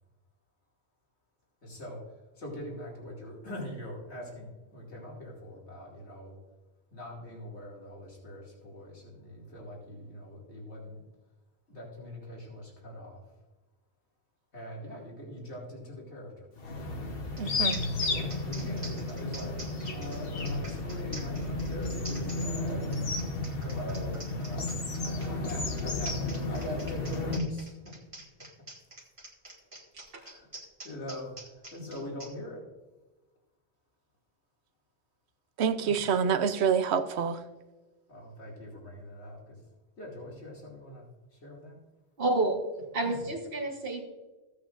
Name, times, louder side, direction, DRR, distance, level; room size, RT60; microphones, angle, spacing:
voice 1, 1.6-2.0 2.3-6.4 6.9-11.0 11.7-13.2 14.5-16.5 18.1-23.0 23.6-27.8 30.1-30.5 30.8-32.6 35.8-35.9 38.1-39.6 40.0-41.1 41.3-41.8 43.0-43.2, left 1 dB, 85° left, 2.8 m, -43 dB
sound 1, 16.6-27.4, left 2 dB, 60° left, 1.4 m, -33 dB
sound 2, 17.4-17.5 17.7-32.3, right 1 dB, 30° right, 1.8 m, -46 dB
voice 2, 17.4-17.9 35.6-37.4, right 6 dB, 75° right, 1.0 m, -27 dB
voice 3, 42.2-42.6 42.9-44.0, right 2 dB, 60° right, 1.5 m, -29 dB
16.0 x 8.2 x 2.5 m
omnidirectional pair, 1.1 m